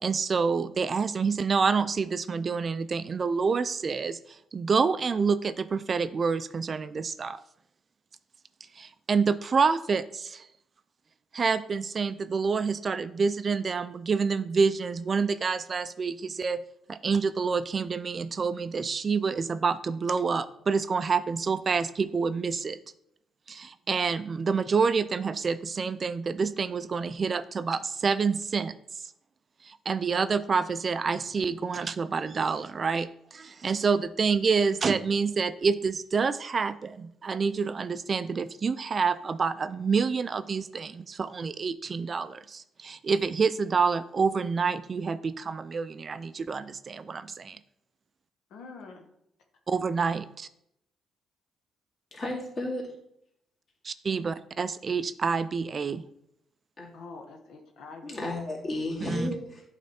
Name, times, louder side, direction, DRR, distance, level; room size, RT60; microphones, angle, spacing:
voice 1, 0.0-7.4 8.7-10.5 11.3-16.6 16.9-22.8 23.5-29.1 29.6-47.6 49.7-50.5 53.8-56.0 59.0-59.3, right 5 dB, 40° right, 14 dB, 0.3 m, -28 dB
voice 2, 48.5-49.1 56.9-58.4, left 4 dB, 80° left, 3 dB, 0.9 m, -45 dB
voice 3, 52.1-52.8 56.8-56.9 58.0-59.6, left 1 dB, 40° left, -3 dB, 2.3 m, -33 dB
8.3 x 3.3 x 4.2 m, 0.75 s
cardioid pair, 90°, 0 cm